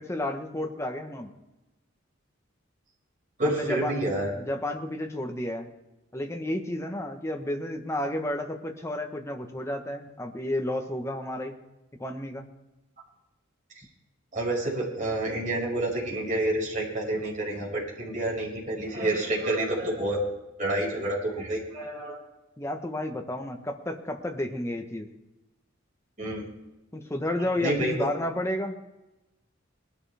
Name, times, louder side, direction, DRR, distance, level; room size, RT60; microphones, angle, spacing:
voice 1, 0.0-1.3 3.4-5.7 6.1-11.6 12.0-12.5 22.6-25.1 26.9-28.8, left 1 dB, 15° left, 3 dB, 1.3 m, -32 dB
voice 2, 3.4-4.3 14.3-20.2 20.6-22.2 26.2-26.5 27.4-28.1, right 1 dB, 40° right, -4 dB, 5.8 m, -29 dB
20.5 x 12.0 x 3.5 m, 1.0 s
head